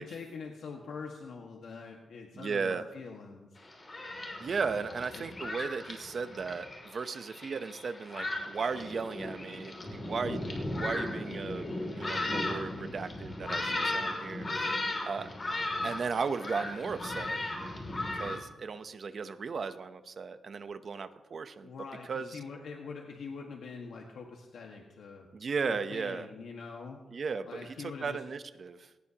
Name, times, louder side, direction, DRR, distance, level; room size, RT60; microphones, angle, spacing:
voice 1, 0.0-3.6 4.7-5.3 21.6-25.3 25.7-27.0 27.5-28.2, left 5 dB, 75° left, 0 dB, 1.7 m, -44 dB
voice 2, 2.3-2.9 4.4-10.5 10.7-11.7 12.0-14.5 15.0-15.3 15.8-17.4 18.1-21.7 22.1-22.4 25.3-26.3 27.1-28.9, right 5 dB, 40° right, 10 dB, 0.8 m, -36 dB
Thunderstorm, 3.6-18.4, left 2 dB, 25° left, 2.8 m, -36 dB
20.5 x 18.5 x 3.0 m, 1.1 s
wide cardioid pair, 165°, 0 cm